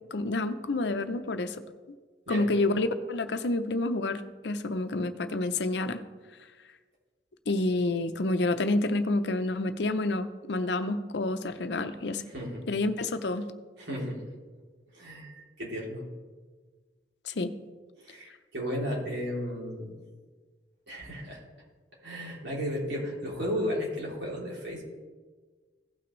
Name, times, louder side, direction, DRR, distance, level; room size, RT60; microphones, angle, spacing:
voice 1, 0.0-1.6 2.3-6.0 7.5-12.2 12.7-13.5 17.2-17.5, left 2 dB, 75° left, 10 dB, 0.6 m, -29 dB
voice 2, 12.3-12.6 13.8-14.2 14.9-16.0 18.0-19.9 20.9-21.4 22.0-24.8, equal, 80° right, -4 dB, 3.0 m, -34 dB
16.0 x 5.9 x 3.1 m, 1.4 s
head